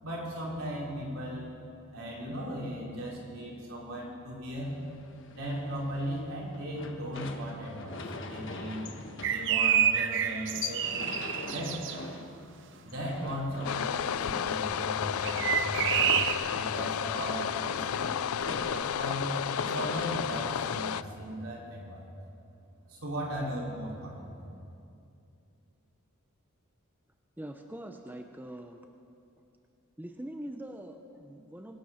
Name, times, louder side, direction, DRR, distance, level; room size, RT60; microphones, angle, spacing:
voice 1, 0.0-1.5 1.9-4.7 5.4-8.8 9.3-10.9 11.5-11.8 12.8-16.0 16.5-19.3 19.6-22.1 22.9-24.5, equal, 75° right, -4 dB, 3.9 m, -37 dB
sound 1, 4.6-21.6, left 3 dB, 60° left, 1.2 m, -43 dB
sound 2, 9.2-12.0 15.2-16.3, right 9 dB, 60° right, 0.6 m, -28 dB
sound 3, 13.6-21.0, left 8 dB, 80° left, 0.4 m, -32 dB
voice 2, 27.4-28.8 30.0-31.8, right 1 dB, 10° right, 5 dB, 0.6 m, -43 dB
23.0 x 9.4 x 5.8 m, 2.5 s
head